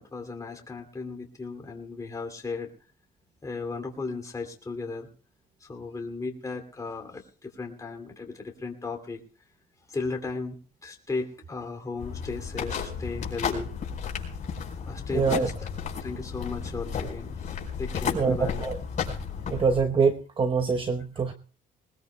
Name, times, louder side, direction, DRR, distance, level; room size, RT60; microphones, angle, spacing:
voice 1, 0.0-2.7 3.4-5.1 5.6-9.2 9.9-13.7 14.9-15.5 16.0-17.4 17.8-18.7, left 3 dB, 20° left, 3 dB, 2.7 m, -35 dB
sound 1, 12.0-19.8, left 6 dB, 45° left, 4.8 m, -33 dB
voice 2, 15.1-15.5 18.1-18.8 19.5-21.3, right 5 dB, 30° right, 6 dB, 1.0 m, -25 dB
20.5 x 20.0 x 2.3 m, 0.38 s
cardioid pair, 110°, 17 cm